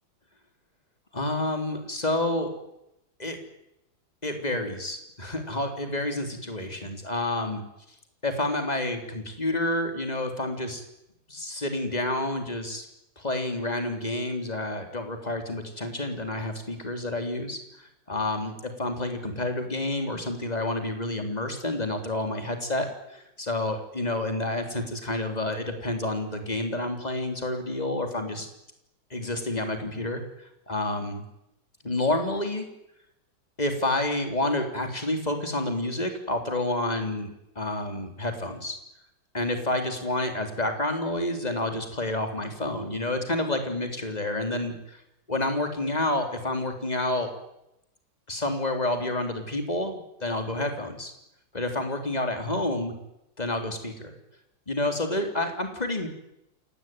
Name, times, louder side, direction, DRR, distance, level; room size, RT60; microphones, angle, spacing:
voice 1, 1.1-2.5 3.2-3.4 4.2-7.6 8.2-10.8 11.3-12.9 13.2-28.5 29.1-31.2 31.8-32.7 33.6-37.3 37.6-38.8 39.3-45.0 45.3-47.3 48.3-51.1 51.5-52.9 53.4-54.1 54.7-56.1, left 1 dB, 20° left, 6 dB, 3.8 m, -29 dB
28.0 x 18.0 x 9.3 m, 0.85 s
omnidirectional pair, 2.1 m